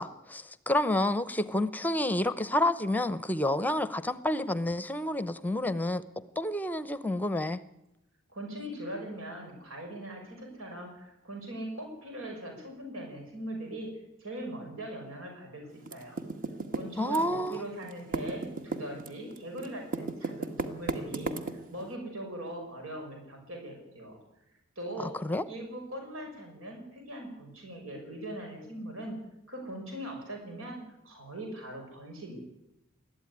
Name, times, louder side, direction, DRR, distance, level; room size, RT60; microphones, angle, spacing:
voice 1, 0.0-6.0 6.4-7.6 17.0-17.6 25.0-25.4, left 1 dB, 10° left, 0.7 m, -29 dB
voice 2, 8.3-13.9 14.2-16.2 16.7-21.3 21.7-24.2 24.8-25.1 25.4-29.2 29.5-30.8 31.0-32.4, right 1 dB, 85° right, 6.0 m, -40 dB
Typing, 15.9-17.6 17.8-21.8, right 3 dB, 45° right, 1.8 m, -34 dB
21.0 x 14.0 x 9.6 m
head